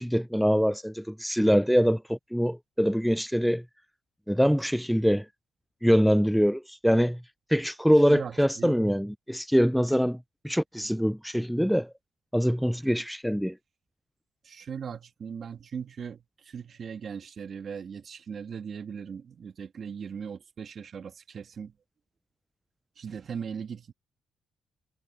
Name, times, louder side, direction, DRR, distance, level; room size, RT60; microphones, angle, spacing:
voice 1, 0.0-3.6 4.3-5.3 5.8-7.2 7.5-10.2 10.4-11.9 12.3-13.6, equal, ahead, 0.4 m, -24 dB
voice 2, 8.1-8.8 12.9-13.0 14.4-21.7 23.0-23.9, right 7 dB, 50° right, 1.7 m, -39 dB
cardioid pair, 90°, 0 cm